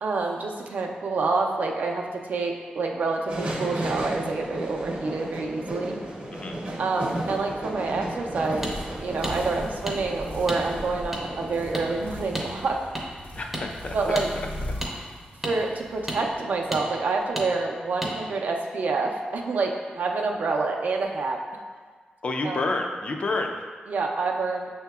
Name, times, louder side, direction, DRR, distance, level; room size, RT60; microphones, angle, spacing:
voice 1, 0.0-6.0 6.8-8.7 9.0-12.8 13.9-14.3 15.4-21.4 22.4-22.6 23.9-24.7, right 3 dB, 65° right, 1 dB, 0.4 m, -27 dB
sound 1, 3.3-12.3, right 1 dB, 50° right, 0.8 m, -34 dB
sound 2, 6.9-16.7, left 1 dB, 75° left, 1.2 m, -40 dB
sound 3, 8.6-8.7 9.2-9.4 9.9-10.0 10.5-10.6 11.1-11.2 11.7-11.9 12.3-12.5 12.9-13.0 13.5-13.7 14.1-14.3 14.8-14.9 15.4-15.6 16.1-16.2 16.7-16.8 17.4-17.5 18.0-18.1, right 1 dB, 5° right, 0.6 m, -31 dB
voice 2, 13.4-14.2 22.2-23.7, left 2 dB, 40° left, 3 dB, 0.4 m, -29 dB
6.4 x 2.8 x 2.3 m, 1.5 s
wide cardioid pair, 125°, 3 cm